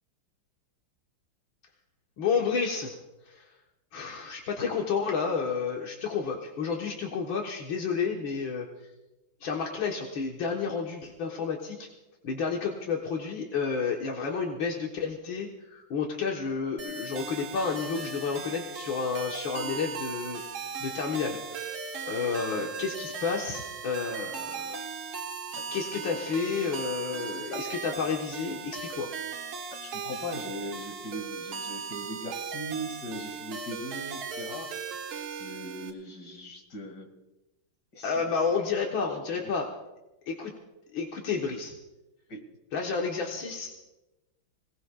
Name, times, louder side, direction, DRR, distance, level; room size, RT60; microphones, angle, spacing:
voice 1, 2.2-3.0 3.3-3.5 3.9-8.7 9.4-11.9 12.2-20.4 20.8-24.6 25.7-29.1 38.0-39.7 40.3-40.5 40.9-41.8 42.7-43.7, left 5 dB, 75° left, 0 dB, 2.1 m, -31 dB
sound 1, 16.8-35.9, right 5 dB, 90° right, 2.1 m, -38 dB
voice 2, 29.7-34.8 35.3-37.1 37.9-38.4 42.3-42.4, equal, 55° left, 2 dB, 2.8 m, -39 dB
26.0 x 18.5 x 2.4 m, 1.0 s
omnidirectional pair, 2.2 m